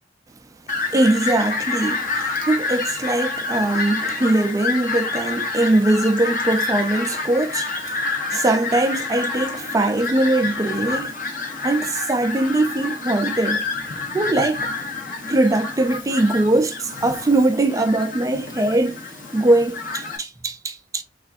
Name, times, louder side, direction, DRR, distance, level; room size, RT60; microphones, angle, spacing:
Fowl, 0.7-20.2, left 3 dB, 45° left, 0.8 m, -28 dB
voice 1, 0.9-11.1 11.6-13.6 14.1-14.7 15.3-19.0 19.3-21.0, right 2 dB, 15° right, 0.3 m, -21 dB
4.3 x 2.4 x 2.4 m
head